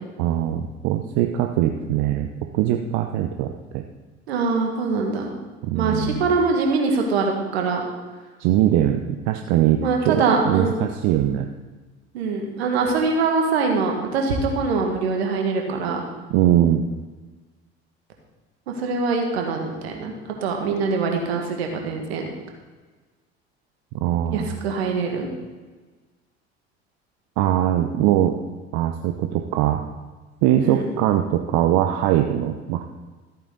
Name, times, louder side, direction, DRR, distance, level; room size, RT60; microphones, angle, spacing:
voice 1, 0.2-2.3 2.5-3.8 5.6-6.3 8.4-11.5 16.3-16.8 24.0-24.5 27.4-28.4 28.7-29.8 30.4-32.8, right 12 dB, 60° right, 5 dB, 0.8 m, -21 dB
voice 2, 4.3-5.3 5.7-7.8 9.8-10.7 12.1-16.0 18.7-20.1 20.4-22.3 24.3-25.3 30.6-30.8, right 4 dB, 75° right, 2 dB, 1.9 m, -23 dB
14.0 x 8.7 x 3.9 m, 1.3 s
hypercardioid pair, 60°, 32 cm